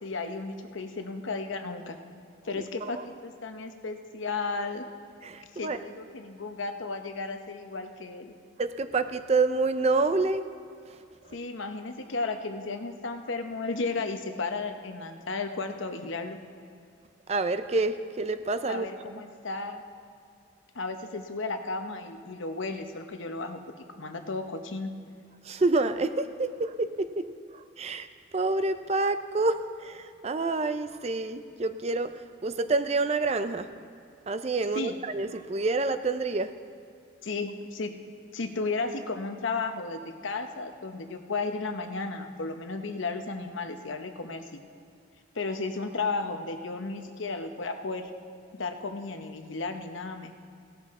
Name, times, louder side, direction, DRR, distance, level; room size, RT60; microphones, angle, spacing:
voice 1, 0.0-2.0 2.4-4.8 5.5-8.3 11.3-16.4 18.7-19.8 20.7-23.6 23.9-24.9 34.7-34.9 37.2-37.9 38.3-44.6 45.3-48.1 48.6-50.3, left 3 dB, 75° left, 6 dB, 0.9 m, -34 dB
voice 2, 2.6-3.0 5.2-5.8 8.6-10.5 17.3-18.9 25.4-27.3 27.5-28.1 28.3-32.1 32.4-33.7 34.3-36.5, right 3 dB, 30° right, 11 dB, 0.4 m, -28 dB
17.0 x 12.5 x 3.7 m, 2.5 s
head